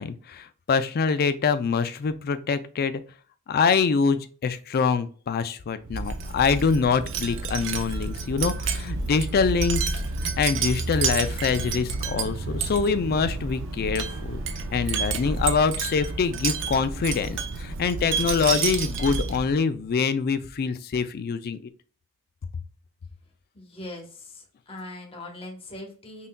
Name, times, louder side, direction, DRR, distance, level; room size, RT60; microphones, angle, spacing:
voice 1, 0.0-3.0 3.5-14.4 14.7-21.6, left 5 dB, 45° left, 11 dB, 0.4 m, -25 dB
Wind chime, 5.8-19.6, right 4 dB, 60° right, 0.5 m, -29 dB
voice 2, 23.5-26.3, left 2 dB, 25° left, 0 dB, 0.9 m, -40 dB
5.5 x 2.6 x 2.2 m, 0.41 s
head